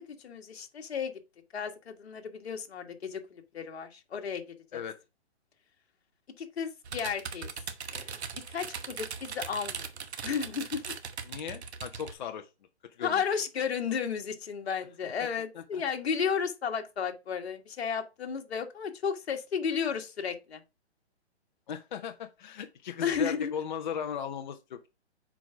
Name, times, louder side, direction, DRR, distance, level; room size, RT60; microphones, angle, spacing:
voice 1, 0.2-1.1 1.5-4.4 4.7-4.8 6.4-7.5 7.9-8.2 8.5-9.9 10.2-10.9 13.0-20.6 23.0-23.5, left 6 dB, 65° left, 1.5 m, -33 dB
sound 1, 6.8-12.1, right 6 dB, 70° right, 1.1 m, -39 dB
voice 2, 11.3-12.5 13.0-13.2 15.5-15.8 21.7-24.9, left 8 dB, 45° left, 0.7 m, -37 dB
6.1 x 4.8 x 4.5 m
hypercardioid pair, 165°, 34 cm